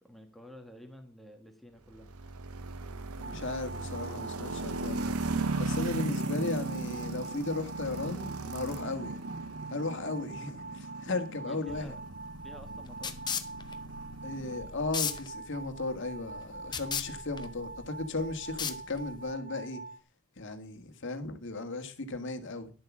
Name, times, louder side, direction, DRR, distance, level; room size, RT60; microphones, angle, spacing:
voice 1, 0.0-2.1 11.4-12.0 12.4-13.2, left 1 dB, ahead, 1.5 m, -50 dB
sound 1, 2.0-15.2, right 3 dB, 75° right, 0.8 m, -37 dB
voice 2, 3.2-5.2 5.6-9.2 9.7-11.9 14.2-19.8 20.4-22.7, left 3 dB, 55° left, 1.7 m, -36 dB
sound 2, 3.2-20.0, right 3 dB, 40° right, 0.6 m, -45 dB
sound 3, 11.7-19.3, left 7 dB, 20° left, 0.8 m, -38 dB
11.0 x 7.7 x 6.1 m
head